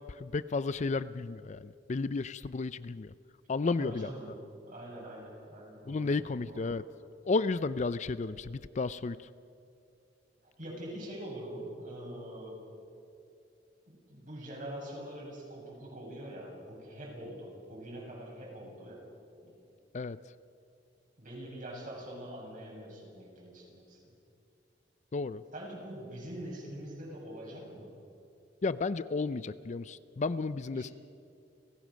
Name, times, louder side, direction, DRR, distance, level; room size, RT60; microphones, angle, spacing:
voice 1, 0.0-3.1 3.5-4.1 5.8-6.8 7.3-9.3 19.9-20.2 25.1-25.4 28.6-30.9, left 3 dB, 40° left, 15 dB, 0.4 m, -33 dB
voice 2, 3.8-6.8 10.4-12.6 13.9-19.0 19.3-19.5 21.2-24.1 25.5-27.9 30.7-30.9, right 1 dB, 45° right, -2 dB, 7.0 m, -44 dB
30.0 x 15.5 x 6.4 m, 2.5 s
head